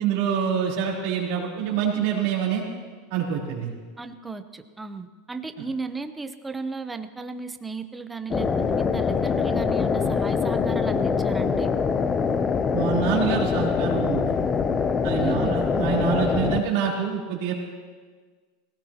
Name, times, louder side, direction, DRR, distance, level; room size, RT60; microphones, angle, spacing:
voice 1, 0.0-2.6 3.1-3.7 12.7-14.4 14.7-14.8 15.0-17.5, right 7 dB, 65° right, -3 dB, 3.6 m, -26 dB
voice 2, 4.0-11.7 15.2-15.6, right 4 dB, 10° right, 9 dB, 0.8 m, -35 dB
sound 1, 8.3-16.6, left 5 dB, 25° left, 0.6 m, -24 dB
19.5 x 17.0 x 2.9 m, 1.5 s
supercardioid pair, 120°, 0 cm